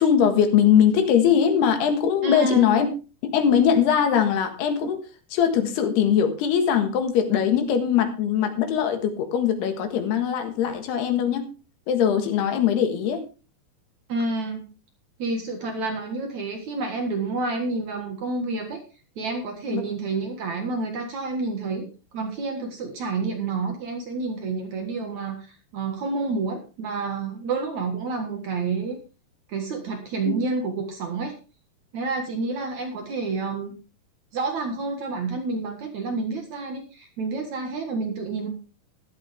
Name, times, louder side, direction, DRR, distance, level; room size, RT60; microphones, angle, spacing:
voice 1, 0.0-2.9 3.2-11.5 11.9-13.3 19.7-19.8 30.3-30.4, left 8 dB, 85° left, 7 dB, 3.6 m, -21 dB
voice 2, 2.2-2.7 14.1-14.6 15.2-18.8 19.2-29.0 29.5-31.3 31.9-33.7 34.3-38.5, right 3 dB, 55° right, 4 dB, 2.5 m, -29 dB
14.0 x 12.0 x 3.5 m, 0.33 s
omnidirectional pair, 4.6 m